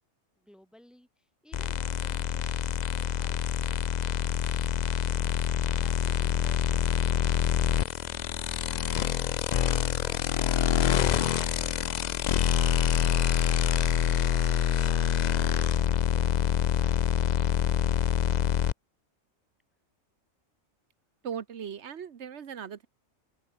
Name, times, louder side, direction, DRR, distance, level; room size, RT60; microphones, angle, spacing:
voice 1, 0.4-0.5, left 1 dB, ahead, 3.3 m, -59 dB
sound 1, 1.5-18.7, left 9 dB, 60° left, 0.4 m, -26 dB
sound 2, 2.4-15.8, right 1 dB, 35° right, 5.0 m, -56 dB
voice 2, 21.2-22.9, right 8 dB, 65° right, 1.3 m, -38 dB
open air
omnidirectional pair, 1.3 m